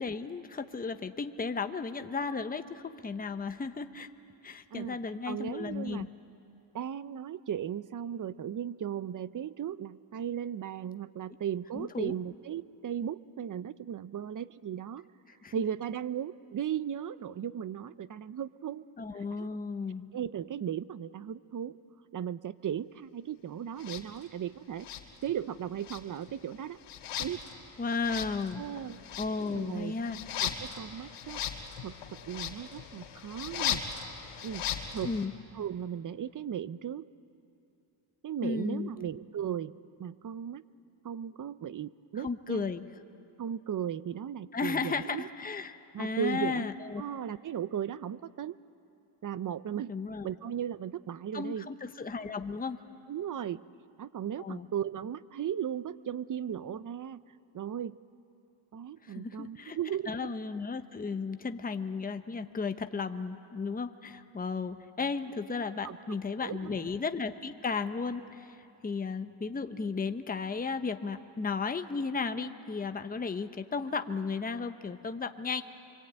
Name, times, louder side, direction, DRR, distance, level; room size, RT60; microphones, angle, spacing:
voice 1, 0.0-4.1 4.4-6.1 11.7-12.1 15.4-15.5 19.0-20.1 27.8-28.7 29.2-30.2 35.0-35.3 38.4-38.9 42.2-42.9 44.5-47.0 49.9-50.3 51.3-52.8 54.4-54.7 59.0-59.8 60.1-68.6 68.8-75.6, left 4 dB, 15° left, 8 dB, 0.9 m, -34 dB
voice 2, 5.3-6.1 6.7-15.1 15.5-18.8 19.1-19.5 20.1-21.8 22.1-24.9 25.2-26.8 27.2-27.4 28.6-29.0 29.5-29.9 30.4-31.4 31.8-32.0 32.3-33.8 34.4-35.1 35.5-37.1 38.2-39.7 40.0-40.6 41.0-42.7 43.4-45.3 45.9-46.7 47.0-48.6 49.2-49.9 50.2-51.7 53.1-53.6 54.0-57.2 57.5-58.0 58.7-60.3 65.8-66.0 66.4-66.9, right 9 dB, 40° right, 16 dB, 0.7 m, -36 dB
sound 1, 23.8-24.0 24.8-25.5 25.8-35.3, left 9 dB, 80° left, 2.7 m, -38 dB
28.0 x 23.5 x 9.0 m, 2.7 s
cardioid pair, 105°, 50 cm